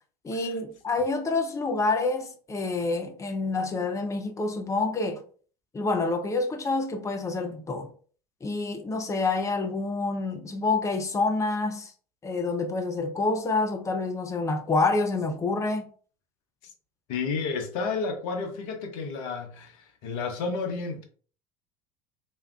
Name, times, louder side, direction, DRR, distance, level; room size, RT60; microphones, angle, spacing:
voice 1, 0.2-5.2 5.7-7.9 8.4-11.9 12.2-15.9, left 3 dB, 15° left, 0.6 m, -27 dB
voice 2, 17.1-21.0, left 4 dB, 60° left, 0.9 m, -31 dB
3.4 x 2.8 x 2.3 m
figure-of-eight pair, 70°, 20 cm